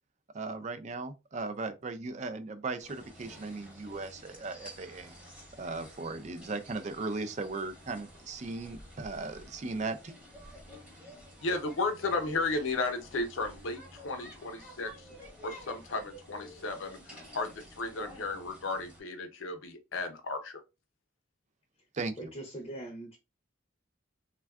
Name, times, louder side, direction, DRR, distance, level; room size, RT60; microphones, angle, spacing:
voice 1, 0.3-5.2 5.6-10.2 21.9-22.3, right 3 dB, 35° right, 0.4 m, -37 dB
sound 1, 2.8-19.0, equal, 5° right, 0.8 m, -51 dB
voice 2, 11.4-14.9 15.4-20.6, left 3 dB, 75° left, 0.6 m, -34 dB
voice 3, 22.2-23.2, right 1 dB, 25° left, 0.5 m, -41 dB
3.5 x 2.2 x 2.3 m
head